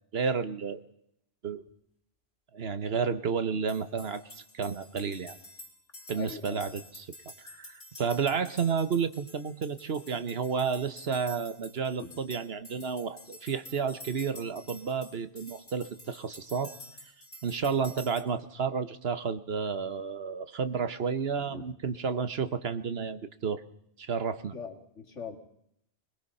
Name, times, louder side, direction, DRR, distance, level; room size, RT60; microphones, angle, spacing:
voice 1, 0.1-0.8 1.4-1.6 2.5-5.4 6.1-7.1 7.4-16.7 17.4-23.6 24.0-24.5, right 6 dB, 60° right, 11 dB, 1.3 m, -31 dB
sound 1, 3.7-18.2, left 1 dB, 60° left, 3.8 m, -50 dB
voice 2, 6.1-6.6 12.0-12.1 21.4-21.7 24.5-25.4, left 5 dB, 80° left, 4 dB, 2.6 m, -41 dB
22.0 x 21.5 x 5.6 m, 0.73 s
omnidirectional pair, 1.2 m